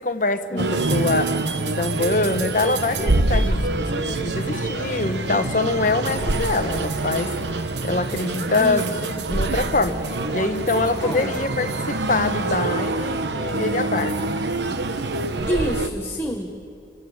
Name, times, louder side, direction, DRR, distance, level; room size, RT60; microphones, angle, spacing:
voice 1, 0.0-1.3 1.7-7.3 7.8-9.0 9.3-10.0 10.3-14.3, left 3 dB, 45° left, 7 dB, 1.2 m, -24 dB
sound 1, 0.6-15.9, right 2 dB, 75° right, 1.1 m, -25 dB
voice 2, 8.6-9.0 11.0-11.4 15.5-16.5, equal, 15° left, 2 dB, 1.2 m, -27 dB
30.0 x 24.5 x 8.1 m, 2.5 s
head